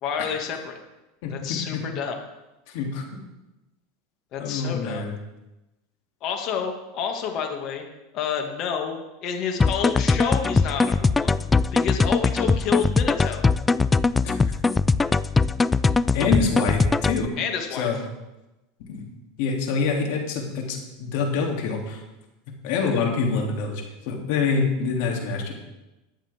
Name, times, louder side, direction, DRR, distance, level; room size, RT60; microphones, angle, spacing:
voice 1, 0.0-0.8 1.3-2.2 4.3-5.1 6.2-7.9 8.1-9.0 9.2-13.5 17.4-18.0, left 7 dB, 50° left, 3 dB, 2.2 m, -29 dB
voice 2, 1.2-1.8 2.7-3.0 4.4-5.1 14.2-14.3 16.1-17.3 17.7-18.0 18.9-19.0 19.4-22.0 22.6-25.5, left 5 dB, 65° left, 0 dB, 3.0 m, -26 dB
sound 1, 9.6-17.3, left 4 dB, 15° left, 0.3 m, -21 dB
21.5 x 7.3 x 3.7 m, 1.0 s
supercardioid pair, 110°, 0 cm